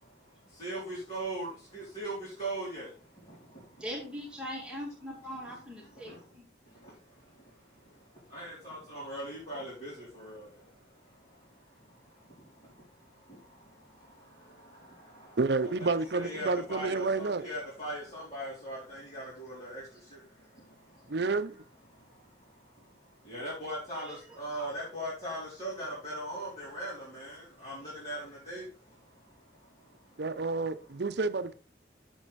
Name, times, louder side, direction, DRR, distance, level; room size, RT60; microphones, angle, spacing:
voice 1, 0.0-3.8 5.3-6.3 6.6-21.3 21.9-30.2, right 1 dB, 35° left, 3.7 m, -42 dB
voice 2, 3.8-6.5 24.0-24.7 27.6-27.7, equal, 5° right, 2.3 m, -41 dB
voice 3, 15.4-17.4 21.1-21.5 30.2-31.5, right 3 dB, 65° right, 0.6 m, -29 dB
7.7 x 7.1 x 4.1 m
head